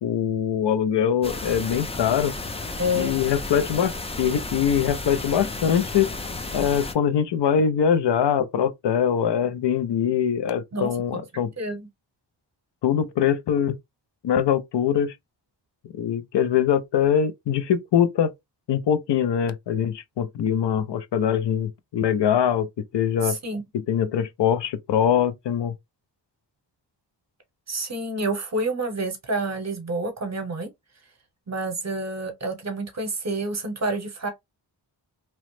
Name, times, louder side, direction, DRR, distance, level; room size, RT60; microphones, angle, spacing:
voice 1, 0.0-2.3 2.9-6.1 6.5-11.5 12.8-13.8 14.2-15.1 16.0-18.3 18.7-22.7 22.9-23.4 23.7-25.7, left 8 dB, 70° left, 0.5 m, -23 dB
sound 1, 1.2-6.9, left 2 dB, 15° left, 0.3 m, -33 dB
voice 2, 2.8-3.2 10.7-11.2 11.6-11.9 23.2-23.6 27.7-30.7 31.5-34.3, right 1 dB, 40° right, 0.8 m, -28 dB
3.0 x 2.0 x 3.0 m
wide cardioid pair, 115°, 43 cm